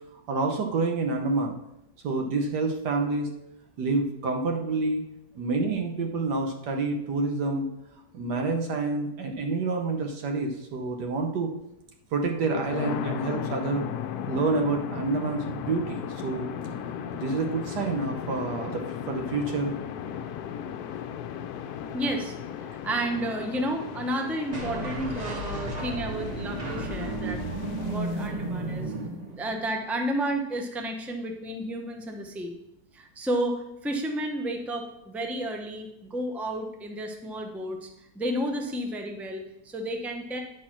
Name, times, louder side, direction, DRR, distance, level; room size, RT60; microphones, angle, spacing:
voice 1, 0.3-1.6 2.0-3.3 3.8-5.0 5.3-7.7 8.1-11.5 12.1-13.8 14.3-16.5 17.1-18.8 19.1-19.7, right 3 dB, 85° right, 3 dB, 1.5 m, -28 dB
sound 1, 12.3-28.2, left 8 dB, 75° left, 1.1 m, -36 dB
voice 2, 21.9-27.4 27.8-28.9 29.4-32.5 32.9-37.9 38.1-40.4, right 1 dB, ahead, 3 dB, 0.5 m, -31 dB
sound 2, 24.5-29.7, right 1 dB, 30° right, 0.9 m, -33 dB
10.0 x 4.3 x 5.9 m, 0.85 s
omnidirectional pair, 1.7 m